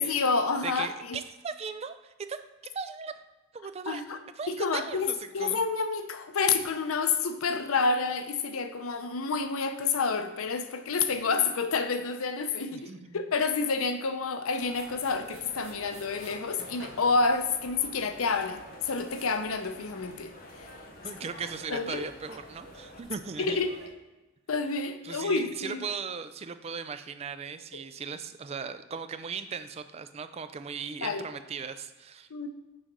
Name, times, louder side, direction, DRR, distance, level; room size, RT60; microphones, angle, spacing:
voice 1, 0.0-1.2 3.9-4.2 4.5-20.3 20.6-20.7 21.7-22.0 23.4-23.7 24.5-25.9 31.0-31.3 32.3-32.5, left 4 dB, 85° left, 8 dB, 0.6 m, -29 dB
voice 2, 0.6-2.4 2.7-3.1 3.5-4.0 4.4-5.6 12.7-13.2 21.0-23.6 25.0-32.3, right 5 dB, 30° right, 10 dB, 0.3 m, -38 dB
sound 1, 14.5-23.9, right 2 dB, 65° right, 1.9 m, -51 dB
sound 2, 15.4-23.0, left 1 dB, 40° left, 0.7 m, -50 dB
6.3 x 3.9 x 4.7 m, 1.1 s
head